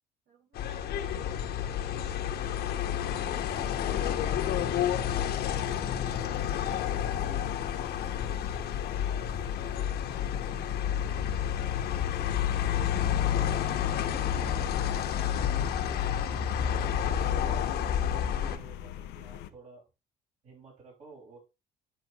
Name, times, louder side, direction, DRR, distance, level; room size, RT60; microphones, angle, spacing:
voice 1, 0.3-3.3, right 4 dB, 75° right, -5 dB, 5.9 m, -69 dB
sound 1, 0.5-18.6, left 9 dB, 70° left, 1.4 m, -30 dB
sound 2, 5.6-19.5, left 12 dB, 90° left, 0.8 m, -44 dB
voice 2, 14.2-15.0 16.6-19.8 20.4-21.4, right 4 dB, 45° right, -4 dB, 5.8 m, -50 dB
10.5 x 6.7 x 3.1 m, 0.26 s
cardioid pair, 110°, 17 cm